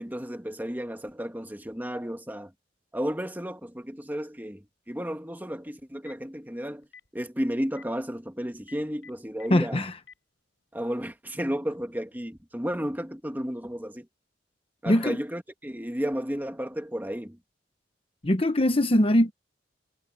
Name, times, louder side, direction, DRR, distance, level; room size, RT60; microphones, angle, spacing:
voice 1, 0.0-2.5 2.9-6.9 7.1-9.8 10.7-14.1 14.8-17.4, equal, 10° right, 1.7 m, -33 dB
Telephone, 5.8-6.3 6.8-7.1 7.7-7.8 8.6-9.5 10.0-10.1, left 6 dB, 85° left, 7.2 m, -49 dB
voice 2, 9.5-10.0 14.8-15.2 18.2-19.3, left 1 dB, 30° left, 1.0 m, -22 dB
head